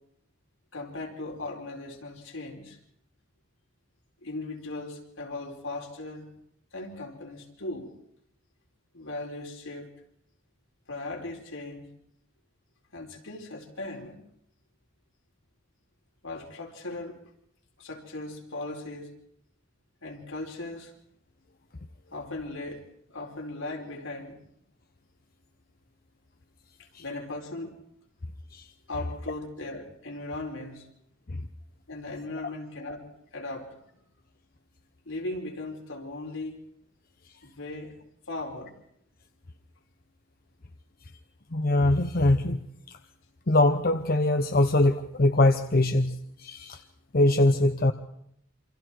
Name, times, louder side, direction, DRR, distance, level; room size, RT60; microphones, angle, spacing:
voice 1, 0.7-2.8 4.2-6.3 6.7-7.9 8.9-9.9 10.9-11.9 12.9-14.2 16.2-17.2 17.8-19.1 20.0-20.9 22.1-22.8 23.1-24.4 26.8-27.8 28.9-30.9 31.9-33.1 33.3-33.8 35.0-36.6 37.4-37.9 38.3-38.7, left 2 dB, 80° left, 0 dB, 4.7 m, -38 dB
voice 2, 41.5-42.6 42.9-43.0 43.5-46.8 47.1-47.9, left 2 dB, 45° left, 7 dB, 0.9 m, -22 dB
27.5 x 25.5 x 4.6 m, 0.71 s
head